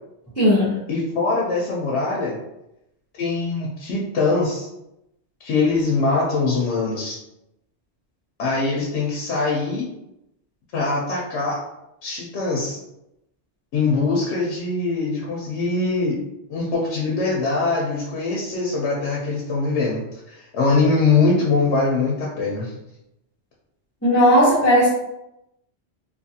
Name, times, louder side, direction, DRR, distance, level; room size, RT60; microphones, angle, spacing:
voice 1, 0.4-0.8 24.0-24.9, equal, 15° left, -10 dB, 0.6 m, -16 dB
voice 2, 0.9-2.4 3.2-4.7 5.4-7.2 8.4-9.9 10.7-11.6 12.0-12.8 13.7-16.1 16.5-20.0 20.3-22.7, left 3 dB, 70° left, -4 dB, 0.9 m, -22 dB
2.7 x 2.4 x 2.7 m, 0.87 s
omnidirectional pair, 1.2 m